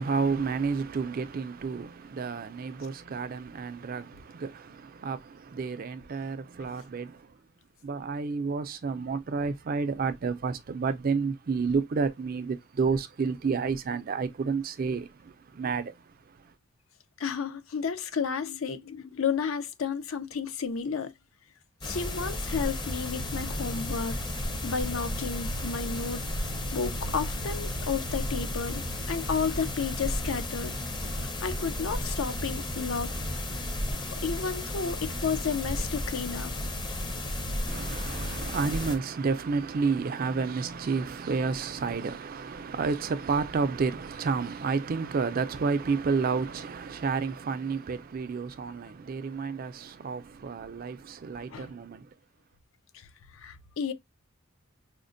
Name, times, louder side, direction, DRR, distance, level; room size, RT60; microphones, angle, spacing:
voice 1, 0.0-7.3 7.8-16.4 37.7-52.1, right 5 dB, 45° right, 0.4 m, -30 dB
voice 2, 17.2-21.1 21.8-24.2 24.6-26.3 26.7-30.7 31.1-33.1 34.2-36.5 51.5-51.7 52.9-53.1 53.3-53.9, left 6 dB, 70° left, 0.5 m, -32 dB
sound 1, 21.8-39.0, left 1 dB, 20° left, 0.6 m, -33 dB
4.9 x 2.1 x 2.5 m
head